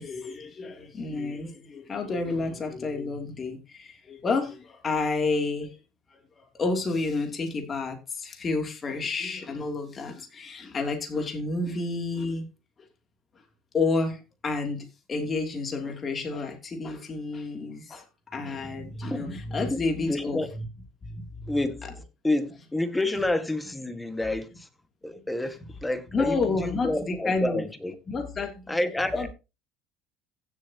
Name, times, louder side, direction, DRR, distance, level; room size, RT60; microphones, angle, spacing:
voice 1, 0.0-5.8 6.4-12.5 13.7-18.0 18.3-20.6 21.0-21.6 21.8-21.9 26.1-27.6 28.1-28.7 29.1-29.3, left 3 dB, 30° left, 3.1 m, -30 dB
voice 2, 20.1-20.5 21.5-21.8 22.2-24.7 25.0-27.9 28.7-29.3, left 1 dB, 10° left, 1.8 m, -29 dB
15.5 x 7.4 x 3.0 m
supercardioid pair, 90°, 0 cm